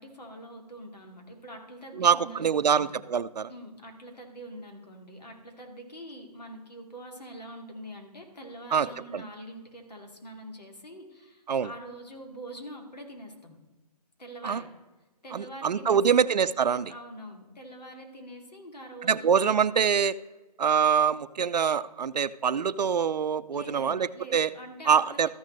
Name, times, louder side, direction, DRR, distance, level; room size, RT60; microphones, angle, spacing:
voice 1, 0.0-2.9 3.5-13.5 14.2-14.7 15.2-16.2 16.9-19.3 23.5-25.3, equal, 80° left, 3 dB, 2.5 m, -44 dB
voice 2, 2.0-3.5 8.7-8.9 9.1-9.2 11.5-11.7 14.4-14.6 15.3-16.9 19.0-20.2 20.6-24.5 24.9-25.3, right 7 dB, 80° right, 13 dB, 0.5 m, -24 dB
13.5 x 6.5 x 3.2 m, 1.2 s
figure-of-eight pair, 150°, 21 cm